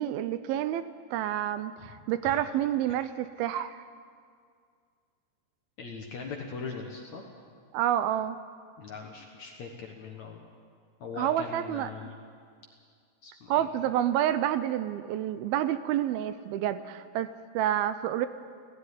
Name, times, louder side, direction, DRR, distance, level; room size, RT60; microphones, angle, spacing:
voice 1, 0.0-3.8 7.7-8.4 11.2-12.1 13.5-18.3, right 11 dB, 80° right, 12 dB, 2.4 m, -29 dB
voice 2, 5.8-7.2 8.8-10.4 11.0-12.1 13.2-13.7, left 4 dB, 55° left, 1 dB, 2.2 m, -40 dB
17.0 x 15.5 x 9.8 m, 2.1 s
omnidirectional pair, 4.6 m